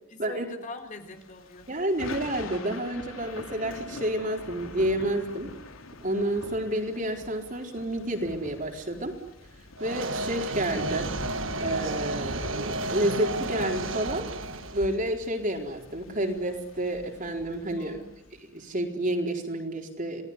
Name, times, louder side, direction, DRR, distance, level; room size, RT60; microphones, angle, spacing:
voice 1, 0.1-1.8 17.7-18.2, left 2 dB, 40° left, 6 dB, 3.6 m, -42 dB
Thunder / Rain, 1.1-18.6, left 2 dB, 85° left, 3.6 m, -44 dB
voice 2, 1.7-5.5 6.0-9.2 9.8-11.1 11.6-14.3 14.7-18.0 18.5-20.2, right 1 dB, 40° right, 3 dB, 4.2 m, -30 dB
sound 1, 9.8-15.0, right 2 dB, 75° right, 1.6 m, -32 dB
28.5 x 19.0 x 9.8 m, 0.86 s
head